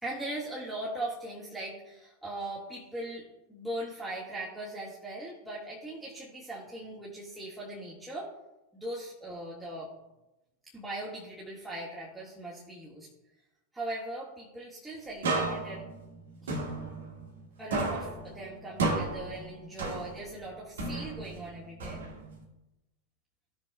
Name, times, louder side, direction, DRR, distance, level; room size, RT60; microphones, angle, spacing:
voice 1, 0.0-8.3 8.7-9.9 10.7-13.1 13.7-15.9 16.4-16.5 17.6-22.0, right 1 dB, 5° right, -6 dB, 1.8 m, -39 dB
sound 1, 15.2-17.4 17.7-20.4 20.8-22.4, right 3 dB, 65° right, 1.8 m, -33 dB
15.5 x 6.1 x 2.3 m, 0.97 s
figure-of-eight pair, 90°, 0 cm